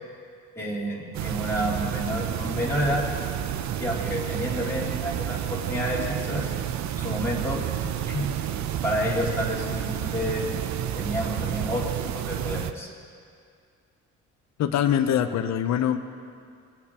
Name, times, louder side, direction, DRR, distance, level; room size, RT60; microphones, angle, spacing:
voice 1, 0.5-3.0 3.8-6.5 7.0-7.6 8.1-8.3 8.8-10.4 10.9-12.9, equal, 10° left, -6 dB, 2.9 m, -29 dB
sound 1, 1.1-12.7, right 10 dB, 65° right, 0.6 m, -30 dB
voice 2, 14.6-16.0, left 10 dB, 65° left, 8 dB, 0.7 m, -23 dB
21.5 x 8.3 x 3.0 m, 2.2 s
cardioid pair, 90°, 30 cm